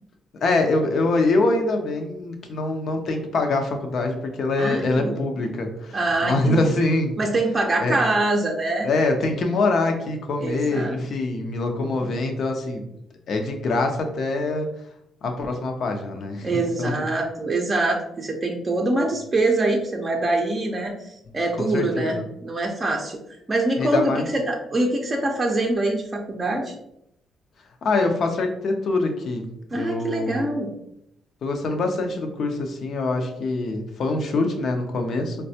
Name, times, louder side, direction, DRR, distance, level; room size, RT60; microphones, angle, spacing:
voice 1, 0.4-7.2 7.8-8.0 8.8-12.8 13.3-14.7 15.2-17.0 21.6-22.2 23.8-24.3 27.8-29.4 29.7-30.4 31.4-35.4, left 2 dB, 60° left, 4 dB, 0.6 m, -24 dB
voice 2, 4.6-5.2 5.9-6.8 7.2-8.9 10.4-11.0 11.8-12.1 16.4-23.2 23.5-26.7 29.7-30.8, right 2 dB, 30° right, 0 dB, 0.5 m, -24 dB
4.0 x 2.2 x 2.7 m, 0.78 s
cardioid pair, 90°, 0 cm